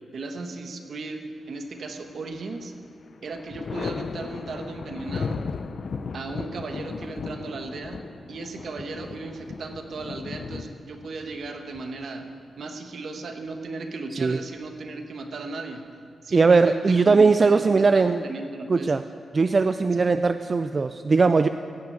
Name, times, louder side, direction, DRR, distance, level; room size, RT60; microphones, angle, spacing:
voice 1, 0.1-2.7 3.2-5.5 6.1-8.0 8.3-12.3 12.6-15.8 16.2-18.9 19.9-20.1, right 3 dB, 65° right, 5 dB, 1.2 m, -36 dB
Thunder, 1.9-2.6 3.0-12.6 14.1-14.9, left 5 dB, 55° left, 0.4 m, -36 dB
voice 2, 16.3-18.2 18.7-19.0 19.3-21.5, right 4 dB, 40° right, 10 dB, 0.3 m, -19 dB
16.0 x 6.0 x 8.6 m, 2.4 s
wide cardioid pair, 105°, 0 cm